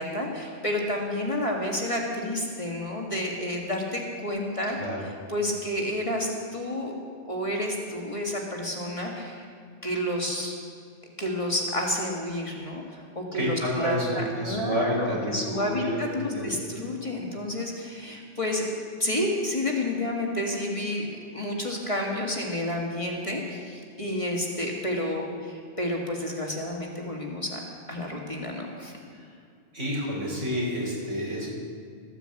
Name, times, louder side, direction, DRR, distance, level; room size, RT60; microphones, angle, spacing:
voice 1, 0.0-4.8 5.3-6.9 7.3-9.5 9.8-10.6 11.2-27.6 27.9-28.9, left 1 dB, 25° left, -1 dB, 1.9 m, -30 dB
voice 2, 13.3-16.0 16.2-16.5 29.1-29.4 29.7-31.5, equal, 80° right, -4 dB, 5.1 m, -29 dB
14.5 x 9.8 x 7.8 m, 2.3 s
omnidirectional pair, 1.2 m